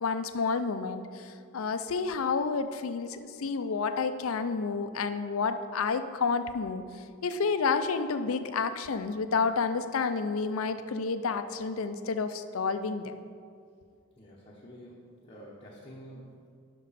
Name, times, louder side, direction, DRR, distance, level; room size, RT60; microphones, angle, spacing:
voice 1, 0.0-6.8 7.2-13.1, left 4 dB, 75° left, 10 dB, 0.5 m, -30 dB
voice 2, 14.2-16.5, equal, 25° left, -5 dB, 1.0 m, -49 dB
11.5 x 5.4 x 4.1 m, 2.2 s
head